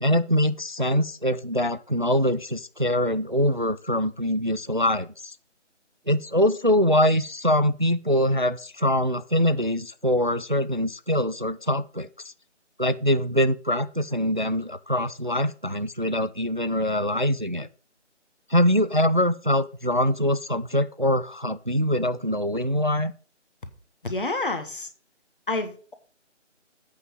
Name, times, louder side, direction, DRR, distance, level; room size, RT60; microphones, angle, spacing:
voice 1, 0.0-5.4 6.1-12.3 12.8-17.7 18.5-23.1, left 1 dB, 45° right, 13 dB, 0.4 m, -23 dB
voice 2, 24.0-24.9 25.5-25.9, left 2 dB, 45° left, 8 dB, 1.6 m, -28 dB
8.2 x 5.5 x 6.2 m, 0.38 s
figure-of-eight pair, 170°, 36 cm